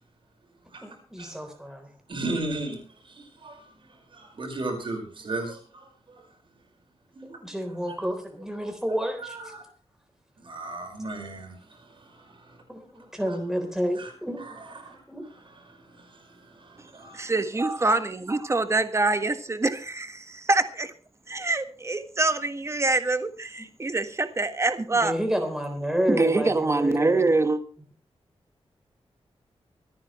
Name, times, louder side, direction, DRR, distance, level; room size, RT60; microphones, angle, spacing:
voice 1, 0.8-1.9 7.4-9.5 12.7-15.2 24.9-27.3, equal, 5° right, 4 dB, 3.7 m, -30 dB
voice 2, 2.1-2.8 3.1-3.6 4.1-5.9 7.2-7.4 9.2-9.6 10.4-11.5 12.4-12.5 13.3-13.4 14.0-14.1 14.4-15.0 15.3-16.0 16.6-17.2 17.6-17.7, right 2 dB, 55° right, 3 dB, 5.2 m, -35 dB
voice 3, 17.1-20.9 21.3-25.1 26.1-27.6, right 3 dB, 25° right, 9 dB, 1.5 m, -25 dB
25.5 x 9.6 x 3.2 m, 0.40 s
wide cardioid pair, 130°, 11 cm